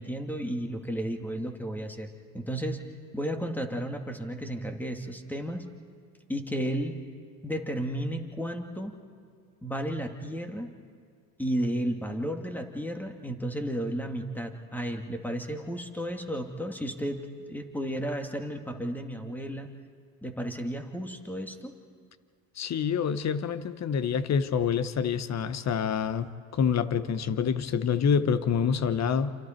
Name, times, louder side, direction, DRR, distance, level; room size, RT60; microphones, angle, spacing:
voice 1, 0.0-2.1 2.3-2.8 3.1-5.6 6.3-7.0 7.4-8.9 9.6-10.7 11.4-17.2 17.5-19.7 20.2-21.8, equal, 5° left, 4 dB, 2.4 m, -33 dB
voice 2, 22.6-29.3, left 7 dB, 40° left, 13 dB, 1.2 m, -27 dB
29.0 x 27.5 x 4.6 m, 2.1 s
supercardioid pair, 80°, 40 cm